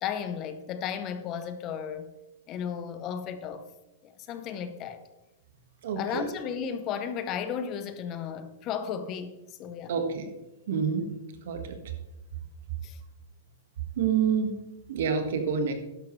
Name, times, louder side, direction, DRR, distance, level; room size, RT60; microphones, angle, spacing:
voice 1, 0.0-2.1 2.5-3.7 4.0-5.0 6.0-9.9 11.8-11.9 12.8-13.0, left 8 dB, 35° left, 0.9 m, -34 dB
voice 2, 5.8-6.2 9.9-10.3 10.7-11.1 11.5-11.7 14.0-14.5 14.9-15.7, right 6 dB, 70° right, 1.8 m, -27 dB
12.5 x 10.5 x 3.3 m
hypercardioid pair, 140°, 0 cm